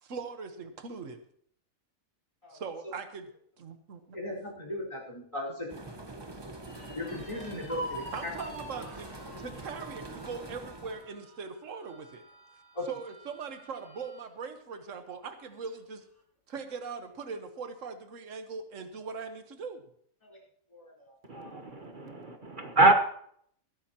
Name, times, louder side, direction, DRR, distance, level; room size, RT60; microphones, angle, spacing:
voice 1, 0.0-1.2 2.5-3.3 3.6-4.2 8.1-9.1 9.4-12.2 12.9-16.0 16.5-19.8, right 5 dB, 65° right, 7 dB, 1.6 m, -40 dB
voice 2, 4.1-5.8 6.1-6.5 6.9-8.3 12.7-12.8 20.2-20.4 20.7-21.6, left 1 dB, 25° left, -2 dB, 4.7 m, -39 dB
sound 1, 5.7-11.1, right 2 dB, 20° right, 1.1 m, -44 dB
sound 2, 6.6-14.3 14.7-14.8 15.2-15.9, right 1 dB, 40° left, 5.4 m, -46 dB
voice 3, 21.3-22.9, right 2 dB, 40° right, 5 dB, 1.2 m, -25 dB
21.5 x 11.5 x 2.9 m, 0.64 s
omnidirectional pair, 1.4 m